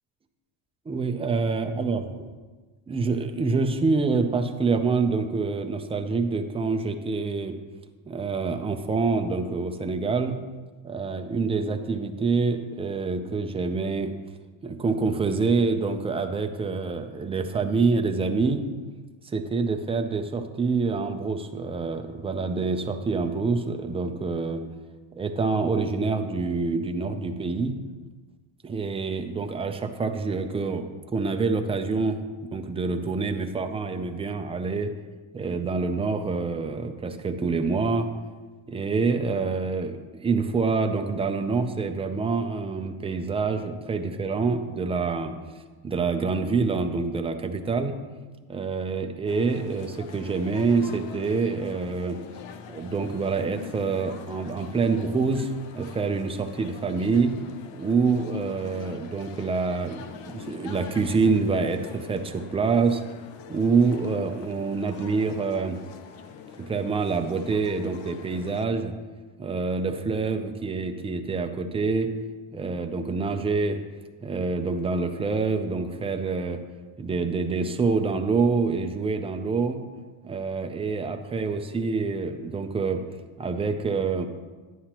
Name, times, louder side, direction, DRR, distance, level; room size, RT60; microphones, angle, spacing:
voice 1, 0.9-2.3 2.9-7.6 8.1-10.4 10.8-14.1 14.6-18.6 19.3-24.6 25.1-27.8 28.6-30.8 31.1-34.9 35.3-38.1 38.7-45.3 45.8-48.0 48.5-52.2 52.7-57.3 57.7-63.0 63.5-65.8 66.6-68.9 69.4-72.1 72.5-73.8 74.2-76.6 77.0-79.8 80.2-83.0 83.4-84.3, right 4 dB, 15° right, 6 dB, 0.4 m, -26 dB
sound 1, 49.3-68.7, left 7 dB, 65° left, 0.7 m, -44 dB
10.0 x 9.4 x 2.9 m, 1.3 s
cardioid pair, 130°, 48 cm